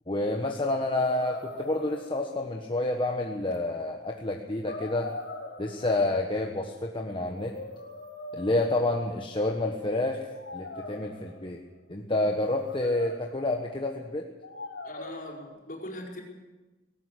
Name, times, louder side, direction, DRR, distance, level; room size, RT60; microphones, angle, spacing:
voice 1, 0.1-5.1 5.6-7.5 8.3-10.3 10.5-11.6 11.9-14.3, left 2 dB, 25° left, 2 dB, 1.4 m, -29 dB
sound 1, 1.0-2.7 3.5-3.6 4.7-6.2 7.2-9.4 10.3-11.6 12.3-13.6 14.4-15.4, left 2 dB, 70° left, 4.0 m, -42 dB
voice 2, 14.8-16.2, left 1 dB, 50° left, 0 dB, 5.1 m, -40 dB
19.0 x 18.5 x 8.3 m, 1.2 s
head